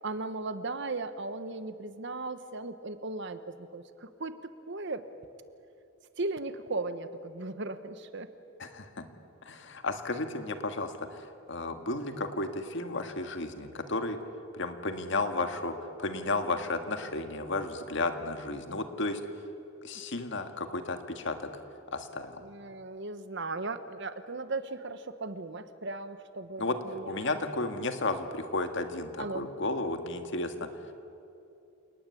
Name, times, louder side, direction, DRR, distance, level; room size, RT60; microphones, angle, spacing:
voice 1, 0.0-5.1 6.2-8.3 22.4-27.4 29.2-29.5, right 3 dB, 60° right, 11 dB, 1.2 m, -37 dB
voice 2, 8.6-9.1 9.4-14.2 14.5-19.2 19.8-21.5 21.9-22.4 26.6-26.8 27.1-30.7, left 2 dB, 60° left, 7 dB, 1.9 m, -33 dB
28.5 x 19.5 x 8.6 m, 2.7 s
head